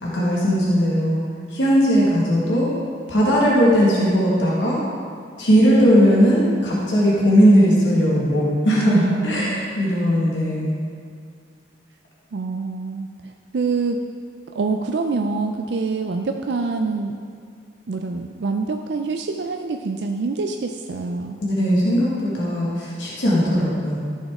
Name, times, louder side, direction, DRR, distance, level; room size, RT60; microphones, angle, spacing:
voice 1, 0.0-1.2 1.5-2.7 3.1-4.8 5.4-10.8 21.4-24.0, equal, 80° left, -6 dB, 1.8 m, -18 dB
voice 2, 8.9-9.7 12.3-14.0 14.5-17.1 17.9-21.4, right 4 dB, 65° right, 4 dB, 0.4 m, -25 dB
14.0 x 6.4 x 3.6 m, 2.2 s
head